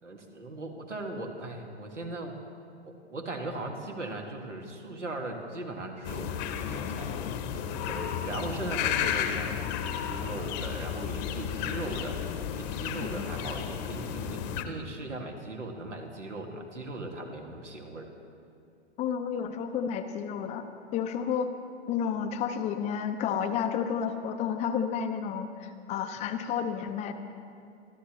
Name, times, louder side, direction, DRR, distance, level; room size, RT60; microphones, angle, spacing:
voice 1, 0.0-2.4 2.8-7.1 7.8-9.7 10.0-12.2 12.6-18.1, right 2 dB, 90° right, 1 dB, 2.1 m, -38 dB
sound 1, 6.0-14.6, left 8 dB, 35° left, 1.0 m, -33 dB
voice 2, 19.0-20.6 20.9-21.5 21.9-27.1, left 7 dB, 20° left, 8 dB, 0.6 m, -31 dB
26.0 x 12.0 x 3.1 m, 2.4 s
figure-of-eight pair, 115°, 35 cm